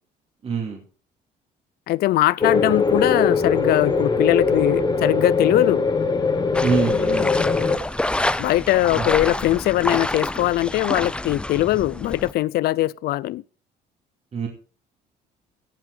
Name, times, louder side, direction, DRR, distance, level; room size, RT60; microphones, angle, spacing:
voice 1, 0.4-0.8 6.6-7.3 9.0-9.1 14.3-14.5, right 6 dB, 40° right, 2.6 m, -24 dB
voice 2, 1.9-5.8 8.4-13.4, left 16 dB, 65° left, 0.5 m, -21 dB
sound 1, 2.4-7.8, left 4 dB, 25° left, 1.8 m, -21 dB
sound 2, 6.5-12.3, left 1 dB, 5° left, 0.4 m, -27 dB
17.5 x 7.6 x 3.9 m
cardioid pair, 110°, 17 cm